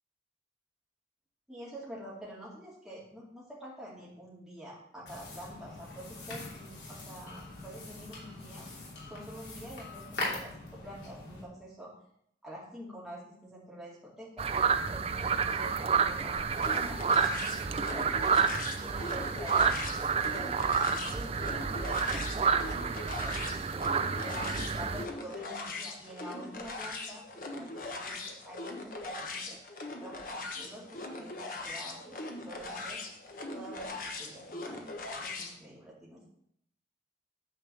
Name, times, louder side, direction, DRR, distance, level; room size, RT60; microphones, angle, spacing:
voice 1, 1.5-8.7 9.1-11.9 12.4-14.5 14.8-18.4 18.8-23.9 24.2-27.2 27.5-29.6 30.0-33.0 33.5-36.3, right 1 dB, 5° right, -7 dB, 2.4 m, -47 dB
sound 1, 5.1-11.4, left 2 dB, 75° left, 3.1 m, -42 dB
sound 2, 14.4-25.0, right 6 dB, 35° right, 0.4 m, -29 dB
sound 3, 16.6-35.6, left 2 dB, 50° left, 1.1 m, -40 dB
9.3 x 4.4 x 6.9 m, 0.71 s
head